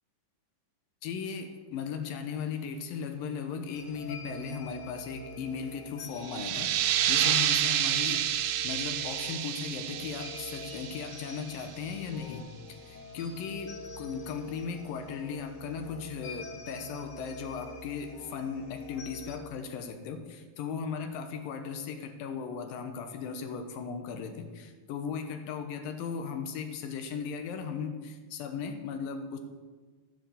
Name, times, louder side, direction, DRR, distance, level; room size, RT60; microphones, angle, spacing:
voice 1, 1.0-12.5 12.8-29.4, left 6 dB, 80° left, 6 dB, 2.7 m, -37 dB
sound 1, 3.7-19.4, left 2 dB, 60° left, 3.2 m, -46 dB
sound 2, 6.2-11.6, right 11 dB, 90° right, 2.5 m, -29 dB
14.0 x 7.3 x 7.0 m, 1.4 s
omnidirectional pair, 4.0 m